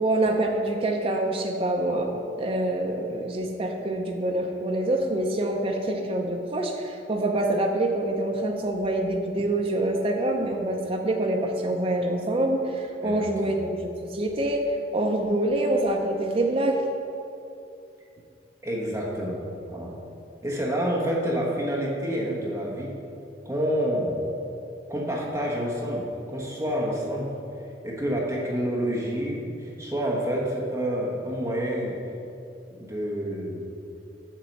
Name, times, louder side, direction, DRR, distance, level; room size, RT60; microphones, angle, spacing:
voice 1, 0.0-16.8, right 1 dB, 30° right, 2 dB, 0.6 m, -26 dB
voice 2, 13.0-13.6 18.6-20.0 20.4-23.0 23.4-24.2 24.9-27.3 27.8-32.0 32.7-33.7, equal, 15° right, -3 dB, 1.2 m, -28 dB
7.5 x 6.6 x 5.3 m, 2.7 s
head